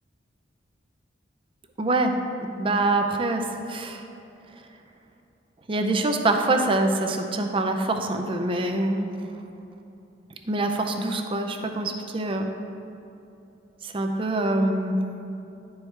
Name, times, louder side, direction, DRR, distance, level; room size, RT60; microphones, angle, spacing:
voice 1, 1.8-2.1 2.4-4.0 5.7-9.1 10.5-12.5 13.8-15.0, right 2 dB, 30° right, 4 dB, 0.5 m, -25 dB
10.5 x 4.7 x 3.2 m, 2.8 s
head